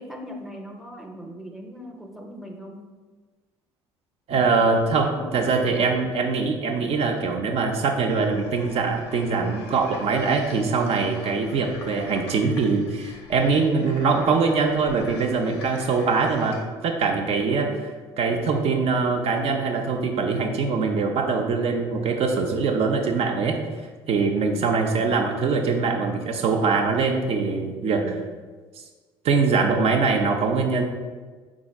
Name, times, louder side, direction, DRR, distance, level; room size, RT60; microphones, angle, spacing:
voice 1, 0.0-2.9 4.7-5.9 11.3-11.6 17.3-17.9 24.3-25.4 28.0-28.3, equal, ahead, 2 dB, 0.7 m, -40 dB
voice 2, 4.3-16.6 16.8-17.7 18.2-23.6 24.1-28.1 29.2-30.8, right 4 dB, 50° right, 4 dB, 0.6 m, -23 dB
sound 1, 8.1-16.6, left 3 dB, 85° left, 0.5 m, -44 dB
4.9 x 3.6 x 2.3 m, 1.4 s
hypercardioid pair, 60°, 13 cm